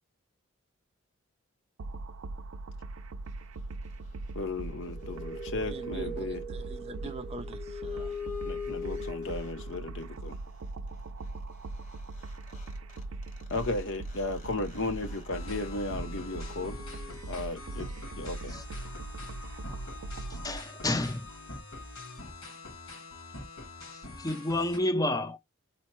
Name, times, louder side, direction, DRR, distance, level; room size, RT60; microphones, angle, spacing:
sound 1, 1.8-20.6, right 2 dB, 85° right, 0.5 m, -40 dB
voice 1, 4.3-6.4 8.2-10.4 13.5-16.8 17.3-17.9 18.2-18.5, left 2 dB, 60° left, 0.8 m, -35 dB
sound 2, 4.6-10.0 11.9-12.0 12.2-17.7, left 2 dB, 35° left, 0.9 m, -42 dB
voice 2, 5.7-8.2, right 3 dB, 30° right, 0.4 m, -43 dB
sound 3, 15.3-24.8, left 2 dB, 85° left, 2.5 m, -45 dB
voice 3, 20.4-21.3 24.2-25.4, left 1 dB, 15° left, 0.6 m, -29 dB
4.3 x 2.1 x 4.4 m
head